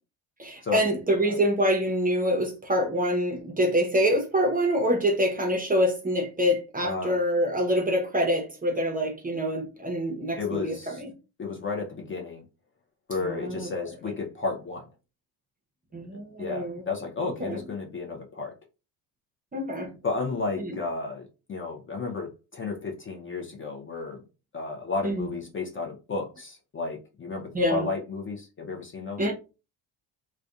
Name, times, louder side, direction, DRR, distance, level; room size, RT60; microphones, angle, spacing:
voice 1, 0.4-11.1 13.2-13.7 14.1-14.2 15.9-16.8 17.4-17.6 19.5-19.9 20.6-20.8 25.0-25.3 27.5-27.9 29.2-29.3, equal, 20° right, 0.6 m, -26 dB
voice 2, 6.8-7.2 10.4-11.0 11.4-12.4 13.1-14.8 16.4-18.5 20.0-24.2 24.5-29.3, left 4 dB, 25° left, 0.6 m, -32 dB
2.5 x 2.2 x 2.3 m
hypercardioid pair, 70°, 50 cm